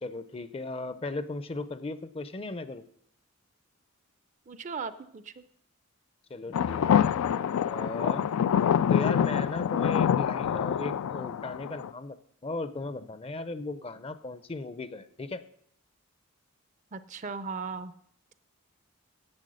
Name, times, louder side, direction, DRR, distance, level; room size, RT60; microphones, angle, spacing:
voice 1, 0.0-2.8 6.3-7.0 7.7-8.3 8.9-12.2 12.4-15.4, left 2 dB, 25° left, 13 dB, 0.5 m, -36 dB
voice 2, 4.5-5.4 16.9-17.9, right 5 dB, 35° right, 14 dB, 0.5 m, -37 dB
sound 1, 6.5-11.9, left 8 dB, 85° left, 0.3 m, -26 dB
10.5 x 8.2 x 6.3 m, 0.67 s
head